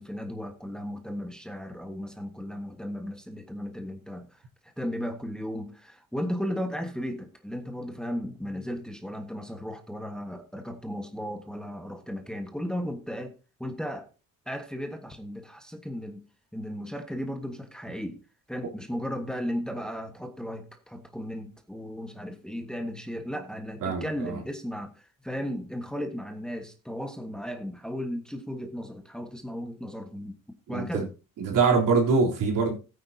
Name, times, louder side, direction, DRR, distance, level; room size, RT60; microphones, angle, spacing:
voice 1, 0.0-13.3 13.6-14.1 14.5-16.2 16.5-18.2 18.5-30.4 30.7-31.1, equal, ahead, 1.4 m, -35 dB
voice 2, 23.8-24.4 30.7-31.0 31.4-32.8, right 4 dB, 70° right, 3.5 m, -24 dB
16.0 x 9.3 x 2.8 m
cardioid pair, 95°, 33 cm